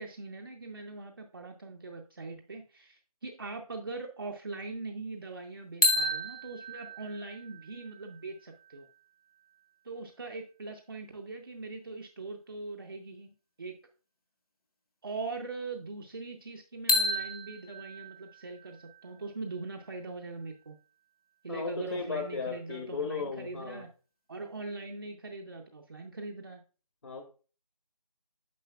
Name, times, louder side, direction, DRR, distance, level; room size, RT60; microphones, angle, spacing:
voice 1, 0.0-8.9 9.8-13.3 13.6-13.8 15.0-20.8 21.4-23.9 24.3-26.6, right 3 dB, 35° right, 2 dB, 0.6 m, -41 dB
sound 1, 5.8-9.7 16.9-20.8, left 1 dB, 70° left, 1.9 m, -33 dB
voice 2, 21.5-23.9 27.0-27.2, left 4 dB, 50° left, 4 dB, 1.1 m, -35 dB
9.3 x 6.3 x 2.3 m, 0.35 s
figure-of-eight pair, 165°, 19 cm